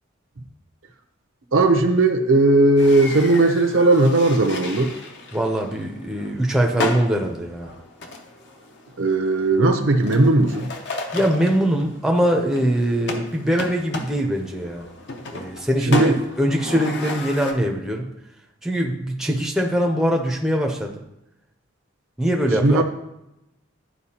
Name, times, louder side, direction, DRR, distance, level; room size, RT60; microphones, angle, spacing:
voice 1, 1.5-4.9 9.0-10.7 15.9-16.2 22.6-22.8, right 2 dB, 75° right, 5 dB, 0.7 m, -17 dB
sound 1, 2.8-17.5, left 1 dB, 55° left, 0.8 m, -33 dB
voice 2, 5.3-7.7 11.1-14.9 15.3-18.1 18.6-20.9 22.2-22.8, equal, ahead, 1 dB, 0.6 m, -22 dB
11.0 x 4.5 x 2.9 m, 0.88 s
head